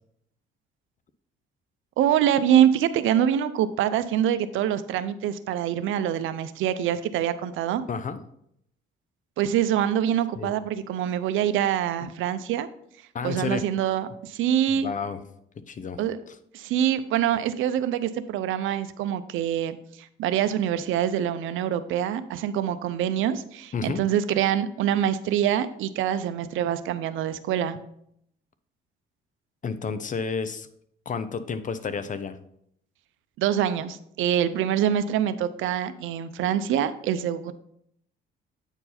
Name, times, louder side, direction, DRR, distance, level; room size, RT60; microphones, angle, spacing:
voice 1, 2.0-7.8 9.4-12.7 13.2-14.9 16.0-16.2 16.5-27.8 33.4-37.5, right 10 dB, 85° right, 12 dB, 0.6 m, -25 dB
voice 2, 7.9-8.2 10.4-10.5 13.1-13.6 14.7-15.2 15.7-16.0 16.3-16.4 23.7-24.1 29.6-30.7 31.1-32.4, left 5 dB, 40° left, 12 dB, 0.7 m, -31 dB
8.7 x 4.6 x 4.1 m, 0.72 s
cardioid pair, 90°, 20 cm